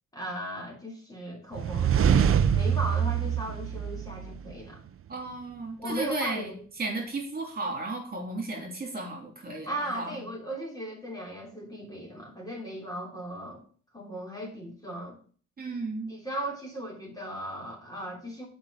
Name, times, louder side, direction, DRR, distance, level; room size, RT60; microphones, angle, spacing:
voice 1, 0.1-4.8 5.8-6.6 9.6-13.6 13.9-15.2 16.1-18.5, equal, 10° left, -2 dB, 3.2 m, -37 dB
sound 1, 1.5-4.5, right 8 dB, 45° right, 0.7 m, -25 dB
voice 2, 5.1-6.5 6.8-10.2 15.6-16.1, right 2 dB, 30° right, 0 dB, 3.3 m, -34 dB
7.3 x 5.4 x 6.8 m, 0.43 s
cardioid pair, 90°, 30 cm